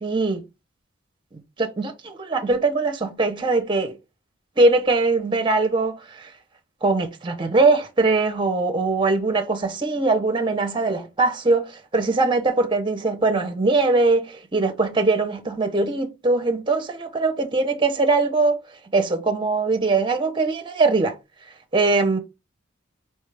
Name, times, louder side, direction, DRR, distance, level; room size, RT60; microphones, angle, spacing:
voice 1, 0.0-0.4 1.3-4.0 4.6-6.3 6.8-18.6 18.9-21.1 21.7-22.2, right 3 dB, 25° right, 0.6 m, -21 dB
4.4 x 2.3 x 3.2 m
head